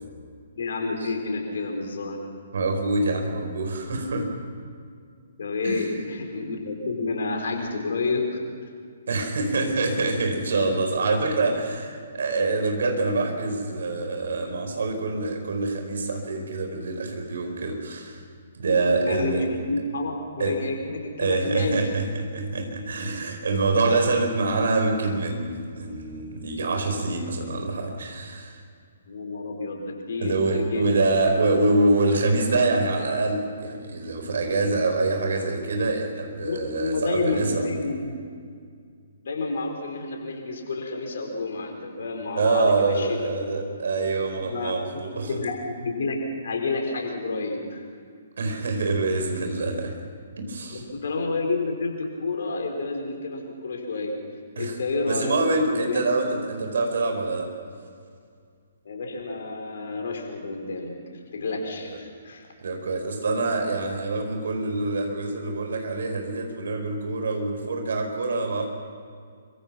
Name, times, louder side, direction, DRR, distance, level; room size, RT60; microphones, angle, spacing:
voice 1, 0.6-2.2 5.4-8.3 18.9-21.8 29.1-31.1 36.4-38.1 39.2-43.6 44.4-44.7 45.1-46.2 46.4-47.8 50.7-54.2 54.6-56.0 58.8-60.9 61.3-62.5, left 3 dB, 55° left, 2 dB, 4.6 m, -29 dB
voice 2, 2.5-4.3 5.6-6.0 9.1-18.2 18.5-19.4 20.4-20.6 21.2-28.6 30.2-37.7 42.4-45.4 48.4-50.0 50.4-50.8 54.6-54.8 55.0-57.5 61.9-62.0 62.6-68.7, right 3 dB, 55° right, 4 dB, 4.9 m, -25 dB
26.0 x 24.5 x 6.0 m, 2.2 s
figure-of-eight pair, 125°, 0 cm